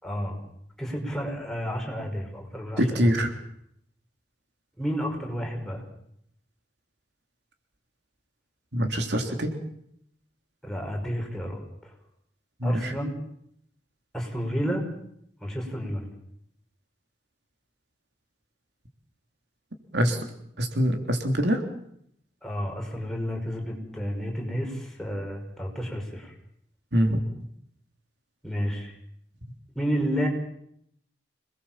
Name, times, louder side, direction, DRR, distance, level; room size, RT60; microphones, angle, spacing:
voice 1, 0.0-0.4 0.8-3.1 4.8-5.8 10.6-11.9 12.6-13.1 14.1-14.8 15.4-16.1 22.4-26.3 28.4-28.9 29.8-30.3, equal, 5° left, 1 dB, 5.6 m, -31 dB
voice 2, 2.8-3.3 8.7-9.5 12.6-13.0 19.9-20.3 20.6-21.6 26.9-27.2, equal, 70° right, 4 dB, 3.4 m, -24 dB
27.5 x 20.5 x 7.5 m, 0.72 s
head